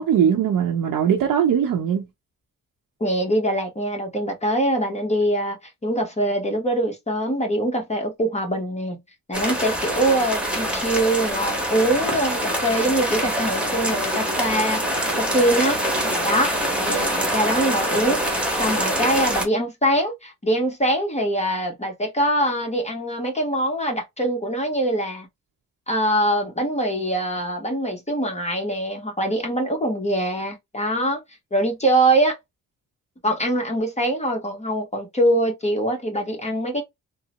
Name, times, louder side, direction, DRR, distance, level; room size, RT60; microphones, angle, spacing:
voice 1, 0.0-2.1 16.9-17.0, right 8 dB, 80° right, 0.8 m, -20 dB
voice 2, 3.0-5.6 5.8-9.0 9.3-14.8 15.2-15.8 16.2-25.3 25.9-31.2 31.5-32.4 33.2-36.8, right 1 dB, 20° left, 1.0 m, -23 dB
sound 1, 9.3-19.5, equal, 5° right, 1.2 m, -24 dB
3.7 x 2.0 x 2.9 m
cardioid pair, 100°, 33 cm